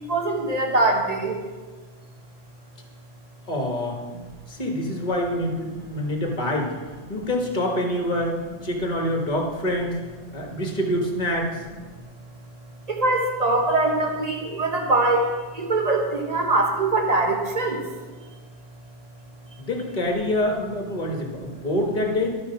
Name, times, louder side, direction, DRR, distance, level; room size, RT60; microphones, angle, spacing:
voice 1, 0.1-1.4 12.9-15.2 15.5-17.8, right 2 dB, 30° right, 2 dB, 1.3 m, -22 dB
voice 2, 3.5-4.0 4.5-6.7 7.1-10.0 10.3-11.6 19.6-22.3, left 1 dB, 35° left, 0 dB, 1.6 m, -26 dB
12.5 x 5.2 x 5.8 m, 1.3 s
omnidirectional pair, 1.5 m